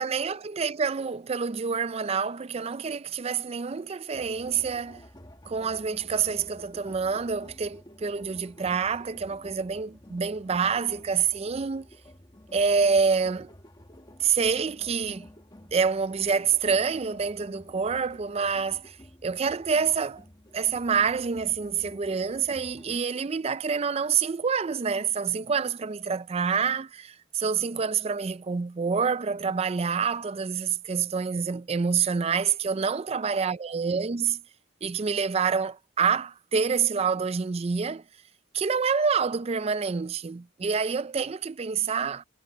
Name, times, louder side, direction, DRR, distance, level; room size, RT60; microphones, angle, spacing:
voice 1, 0.0-5.1 5.5-11.9 12.5-13.5 14.2-15.3 15.7-19.0 19.2-20.2 20.5-34.4 34.8-38.0 38.5-42.2, right 6 dB, 30° right, 0.4 m, -27 dB
sound 1, 4.1-23.0, left 1 dB, 20° left, 1.4 m, -51 dB
head